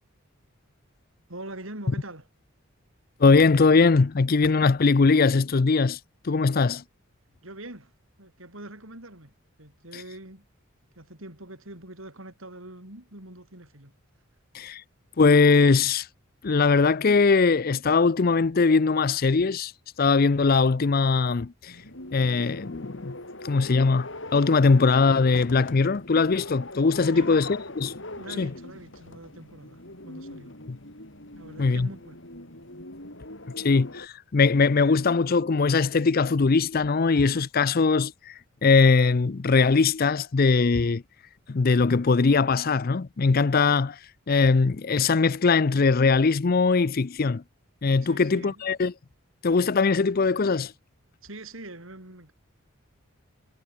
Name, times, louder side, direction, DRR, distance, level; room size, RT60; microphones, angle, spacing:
voice 1, 1.3-2.3 7.4-7.9 8.2-9.3 9.6-10.5 11.0-13.9 27.0-27.5 28.2-30.5 31.3-32.2 48.0-48.8 51.2-52.3, right 1 dB, 75° right, 7.0 m, -43 dB
voice 2, 3.2-6.0 6.2-6.8 14.5-14.8 15.2-16.1 16.4-19.7 20.0-21.7 22.1-23.1 23.4-27.9 28.4-28.5 30.7-30.8 31.6-31.9 33.6-38.3 38.6-41.0 41.5-44.0 44.3-47.4 47.8-48.9 49.4-50.7, left 4 dB, 45° left, 0.5 m, -21 dB
sound 1, 21.7-34.1, left 1 dB, 60° left, 7.9 m, -41 dB
head